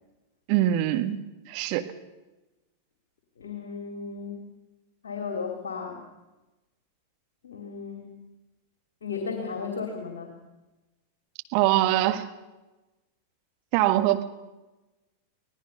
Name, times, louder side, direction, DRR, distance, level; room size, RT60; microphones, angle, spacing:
voice 1, 0.5-1.2 1.5-1.8 11.5-12.3 13.7-14.2, right 14 dB, 45° right, 7 dB, 1.6 m, -23 dB
voice 2, 3.4-4.5 5.0-6.0 7.4-8.2 9.0-10.3, left 5 dB, 65° left, 3 dB, 2.9 m, -35 dB
25.5 x 18.5 x 5.6 m, 1.1 s
figure-of-eight pair, 90°, 0 cm